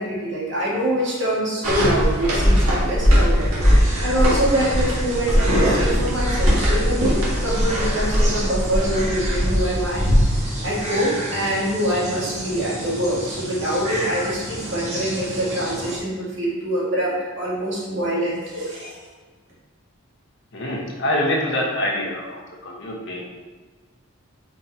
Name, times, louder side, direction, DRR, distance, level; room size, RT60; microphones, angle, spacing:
voice 1, 0.0-10.0 10.4-19.0, right 1 dB, 60° right, -5 dB, 1.8 m, -25 dB
sound 1, 1.6-10.2, equal, 85° right, 1.7 m, -19 dB
sound 2, 3.6-16.0, right 1 dB, 30° right, 1.3 m, -31 dB
voice 2, 20.5-23.2, left 1 dB, 55° left, -2 dB, 1.2 m, -25 dB
5.2 x 4.2 x 4.3 m, 1.4 s
head